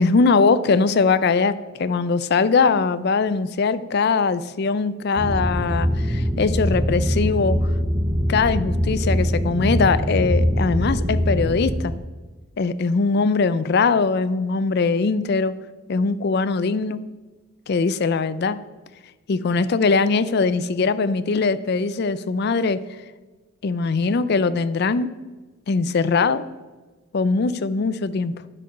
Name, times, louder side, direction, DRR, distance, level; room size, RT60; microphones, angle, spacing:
voice 1, 0.0-7.6 8.3-11.9 12.6-15.5 15.9-17.0 17.7-18.6 19.3-22.8 23.6-25.1 25.7-26.4 27.1-28.4, left 4 dB, 55° left, 15 dB, 0.4 m, -21 dB
sound 1, 5.2-11.8, equal, 20° right, 0.9 m, -22 dB
10.5 x 5.2 x 5.7 m, 1.3 s
head